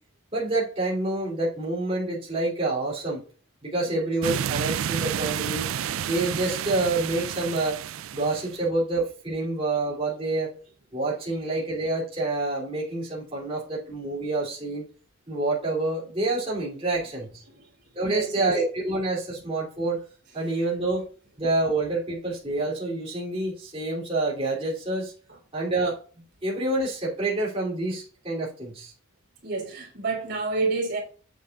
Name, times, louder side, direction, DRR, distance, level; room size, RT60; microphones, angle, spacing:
voice 1, 0.3-3.2 3.6-5.7 6.1-7.8 8.1-10.5 10.9-14.9 15.3-17.4 17.9-20.0 20.3-21.0 21.4-25.1 25.5-26.0 26.4-28.9, right 2 dB, 30° right, 3.0 m, -27 dB
sound 1, 4.2-8.6, right 9 dB, 85° right, 0.4 m, -30 dB
voice 2, 18.0-18.6 29.4-31.0, right 3 dB, 55° right, 3.3 m, -29 dB
8.0 x 7.6 x 2.4 m
head